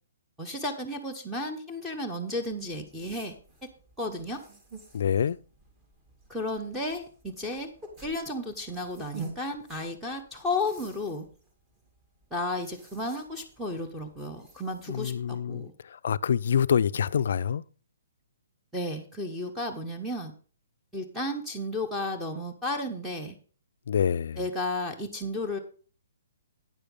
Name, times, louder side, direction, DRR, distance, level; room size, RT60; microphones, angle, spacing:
voice 1, 0.4-3.3 3.6-3.7 4.0-4.4 6.3-7.7 8.0-11.3 12.3-15.7 18.7-20.3 20.9-23.4 24.4-25.6, left 2 dB, 5° right, 1.0 m, -33 dB
sound 1, 2.6-15.0, right 3 dB, 20° right, 2.2 m, -49 dB
voice 2, 4.9-5.4 14.9-15.7 16.0-17.6 23.9-24.4, left 8 dB, 65° left, 0.4 m, -26 dB
9.2 x 6.8 x 5.2 m
hypercardioid pair, 155°, 0 cm